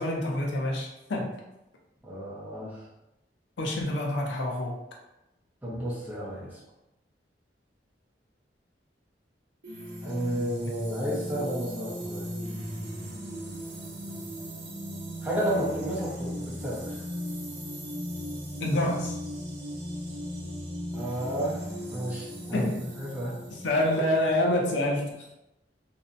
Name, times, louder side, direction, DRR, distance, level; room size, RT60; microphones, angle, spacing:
voice 1, 0.0-1.3 3.6-4.8 18.6-19.2 22.5-22.8 23.5-25.3, left 1 dB, 85° left, -1 dB, 0.5 m, -27 dB
voice 2, 2.0-2.8 5.6-6.6 10.0-12.3 15.2-17.0 20.9-21.6 21.9-23.5, right 1 dB, 10° right, -7 dB, 0.6 m, -32 dB
sound 1, 9.6-24.3, equal, 70° right, 0.6 m, -37 dB
2.6 x 2.1 x 2.5 m, 0.92 s
head